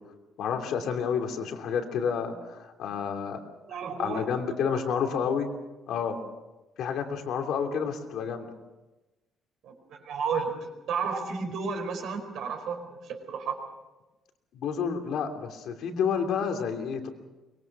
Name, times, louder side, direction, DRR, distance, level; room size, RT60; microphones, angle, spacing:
voice 1, 0.4-3.4 3.7-5.5 5.9-6.2 6.8-8.5 14.5-17.1, left 6 dB, 60° left, 4 dB, 2.9 m, -30 dB
voice 2, 3.7-4.4 9.6-10.6 10.9-13.6, right 5 dB, 60° right, 4 dB, 4.7 m, -32 dB
24.0 x 22.0 x 6.0 m, 1.1 s
cardioid pair, 175°, 0 cm